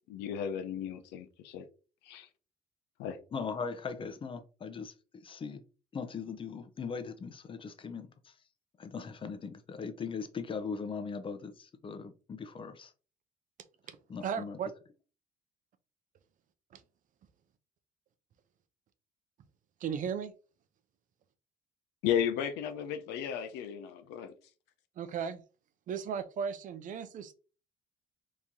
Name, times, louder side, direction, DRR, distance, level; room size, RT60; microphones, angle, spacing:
voice 1, 0.1-1.6 2.1-2.3 3.0-3.2 22.0-24.3, left 9 dB, 90° left, 0.6 m, -34 dB
voice 2, 3.3-5.6 5.9-8.3 8.8-12.9 14.1-14.6, left 5 dB, 30° left, 0.6 m, -39 dB
voice 3, 14.2-14.7 16.7-16.8 19.8-20.3 25.0-25.4 25.9-27.3, right 7 dB, 50° right, 0.5 m, -36 dB
3.0 x 2.6 x 3.6 m
cardioid pair, 110°, 17 cm